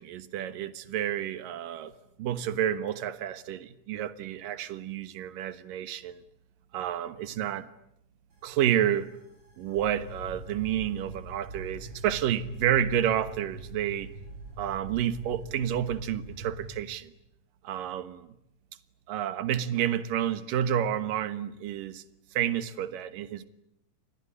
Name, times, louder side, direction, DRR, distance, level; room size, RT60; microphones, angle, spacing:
voice 1, 0.0-1.9 2.2-6.2 6.7-7.7 8.4-9.1 9.6-14.1 14.6-17.1 17.6-18.3 19.1-22.0 22.3-23.5, right 10 dB, 75° right, 2.9 m, -30 dB
sound 1, 8.3-16.8, right 2 dB, 35° right, 6.0 m, -43 dB
28.5 x 21.0 x 9.9 m
omnidirectional pair, 4.0 m